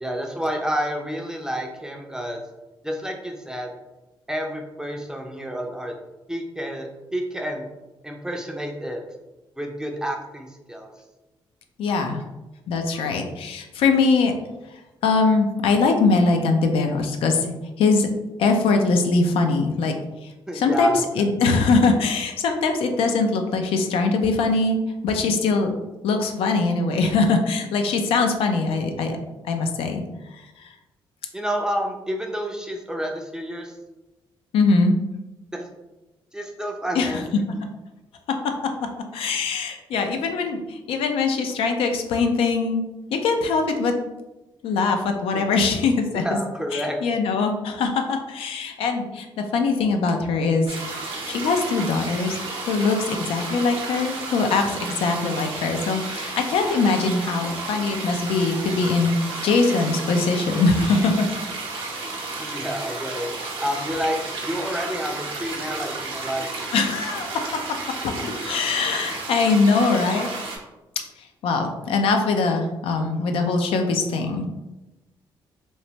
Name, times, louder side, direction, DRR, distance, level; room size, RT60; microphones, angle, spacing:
voice 1, 0.0-2.4 2.8-3.7 4.3-5.9 6.3-7.7 8.0-9.0 9.6-10.9 20.5-21.3 31.3-33.8 35.5-35.7 36.3-37.4 45.3-45.4 46.1-47.0 62.4-63.3 63.6-66.5, equal, 5° right, 1 dB, 0.4 m, -29 dB
voice 2, 11.8-12.2 12.7-14.3 15.0-18.1 18.4-19.9 20.5-24.8 25.0-25.7 26.0-29.2 29.5-30.0 34.5-35.0 36.9-37.2 39.1-42.8 43.2-43.9 44.6-46.2 46.7-49.2 49.5-50.6 51.2-52.4 52.7-59.2 59.4-61.3 66.7-67.4 68.0-70.3 71.4-74.5, left 4 dB, 80° left, 5 dB, 0.4 m, -22 dB
sound 1, 50.7-70.6, right 3 dB, 70° right, 0.7 m, -32 dB
3.0 x 2.1 x 2.7 m, 1.0 s
cardioid pair, 75°, 9 cm